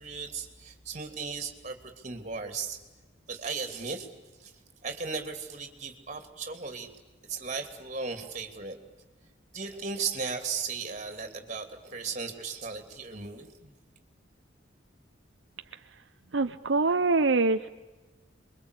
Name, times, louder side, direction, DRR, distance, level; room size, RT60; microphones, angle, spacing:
voice 1, 0.0-2.8 3.3-4.1 4.4-4.5 4.8-6.9 7.3-8.8 9.5-13.7, right 5 dB, 40° right, 6 dB, 3.0 m, -36 dB
voice 2, 16.3-17.7, right 3 dB, 75° right, 8 dB, 0.8 m, -24 dB
27.5 x 23.0 x 8.3 m, 1.2 s
head